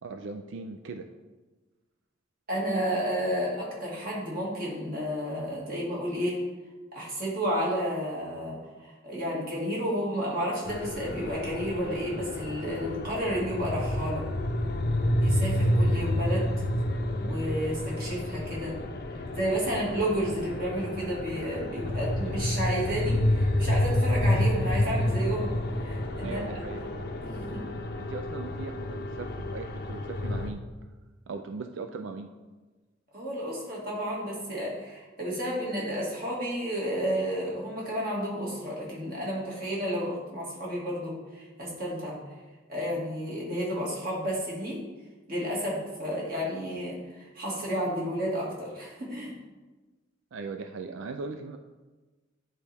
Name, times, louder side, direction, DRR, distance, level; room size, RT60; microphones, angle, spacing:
voice 1, 0.0-1.1 26.2-26.8 28.0-30.7 31.3-32.3 50.3-51.6, right 4 dB, 75° right, 7 dB, 0.4 m, -39 dB
voice 2, 2.5-6.4 6.9-14.3 15.2-16.5 17.2-18.8 19.3-26.8 27.2-27.6 33.1-42.2 42.7-44.8 45.3-49.3, equal, 50° right, -5 dB, 2.0 m, -31 dB
sound 1, 10.7-30.5, left 1 dB, 55° left, 0.6 m, -29 dB
9.9 x 4.1 x 3.4 m, 1.2 s
head